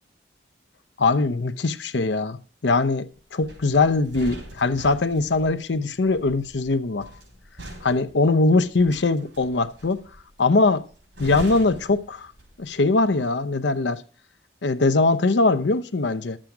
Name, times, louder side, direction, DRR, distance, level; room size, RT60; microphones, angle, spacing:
voice 1, 1.0-7.1 7.8-10.0 10.4-10.8 11.2-12.3 12.6-14.0 14.6-16.4, left 3 dB, 80° left, 0.7 m, -21 dB
sound 1, 3.4-12.8 13.1-13.3, right 1 dB, 80° right, 4.8 m, -42 dB
11.5 x 7.6 x 4.7 m
head